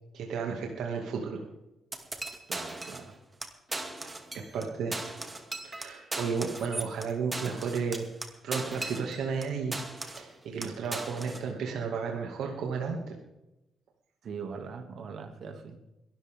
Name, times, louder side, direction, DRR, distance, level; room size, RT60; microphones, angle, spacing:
voice 1, 0.1-1.4 4.5-5.0 5.6-8.1 8.4-9.8 10.1-13.2, right 5 dB, 75° right, 1 dB, 2.3 m, -33 dB
sound 1, 1.9-3.1 3.4-3.5 3.7-4.6 4.9-9.4 9.7-10.3 10.6-11.4, right 2 dB, 20° right, 2.3 m, -38 dB
voice 2, 2.5-3.2 14.2-15.8, right 5 dB, 60° right, 6 dB, 2.4 m, -41 dB
22.0 x 13.0 x 3.7 m, 0.94 s
cardioid pair, 90°, 0 cm